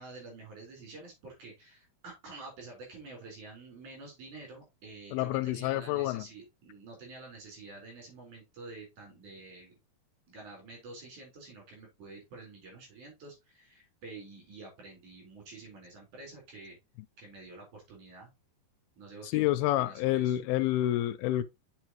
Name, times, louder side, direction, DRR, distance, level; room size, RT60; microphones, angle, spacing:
voice 1, 0.0-9.7 10.3-16.8 17.2-18.3 19.0-20.4, right 3 dB, 50° right, 5.3 m, -48 dB
voice 2, 5.1-6.2 19.3-21.4, left 14 dB, 85° left, 2.4 m, -28 dB
8.2 x 6.0 x 2.9 m
omnidirectional pair, 4.5 m